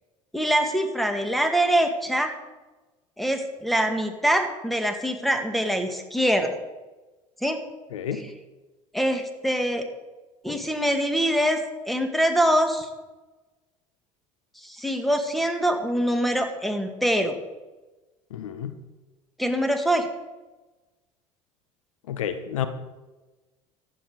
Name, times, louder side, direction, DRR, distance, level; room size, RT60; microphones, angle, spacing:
voice 1, 0.3-2.3 3.2-6.6 7.4-7.6 8.9-9.8 10.4-12.9 14.6-17.3 19.4-20.1, equal, ahead, 6 dB, 2.1 m, -24 dB
voice 2, 7.9-8.3 18.3-18.8 22.1-22.7, left 9 dB, 75° left, 10 dB, 0.9 m, -30 dB
14.0 x 11.0 x 5.0 m, 1.2 s
figure-of-eight pair, 65°, 17 cm